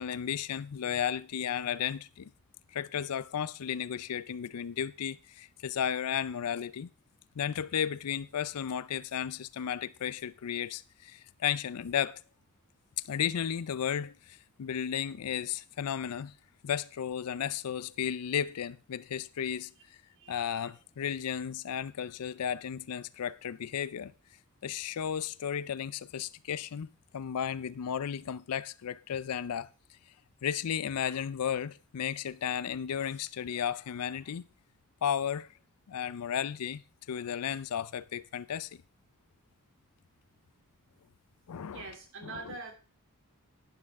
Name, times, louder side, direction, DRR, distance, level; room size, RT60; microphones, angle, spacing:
voice 1, 0.0-2.3 2.7-6.9 7.4-12.2 13.1-16.3 16.6-19.7 20.3-24.1 24.6-29.7 30.4-34.4 35.0-35.5 35.9-36.8 37.1-38.7 41.5-41.9 42.2-42.5, left 8 dB, 85° left, 0.4 m, -34 dB
voice 2, 20.2-20.7 41.7-42.7, right 4 dB, 60° right, 2.8 m, -44 dB
11.5 x 10.0 x 3.6 m
head